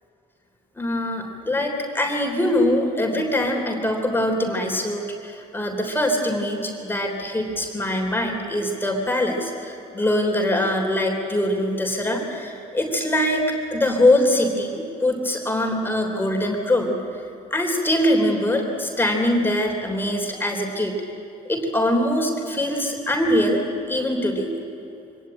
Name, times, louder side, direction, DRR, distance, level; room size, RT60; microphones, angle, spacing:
voice 1, 0.8-17.0 17.5-20.9 21.5-24.5, left 1 dB, 10° left, 2 dB, 3.6 m, -23 dB
24.0 x 18.0 x 9.0 m, 2.8 s
cardioid pair, 110°, 17 cm